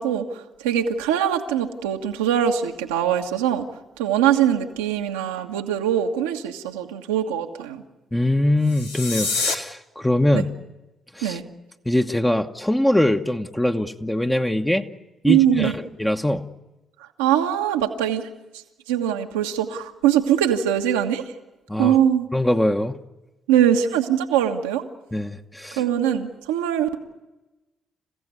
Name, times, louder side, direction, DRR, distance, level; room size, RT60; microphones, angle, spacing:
voice 1, 0.0-3.6 4.0-7.8 10.3-10.5 11.2-11.4 15.3-15.7 17.2-18.3 18.9-21.2 21.8-22.3 23.5-24.8 25.8-27.0, right 10 dB, 85° right, 4 dB, 1.4 m, -22 dB
voice 2, 8.1-10.5 11.1-11.4 11.8-14.9 15.2-15.7 16.0-16.5 21.7-22.0 22.3-23.0 25.1-25.8, left 1 dB, 10° left, 4 dB, 1.2 m, -22 dB
sound 1, 8.6-9.5, left 4 dB, 90° left, 1.5 m, -26 dB
29.0 x 15.5 x 9.7 m, 1.1 s
hypercardioid pair, 45°, 0 cm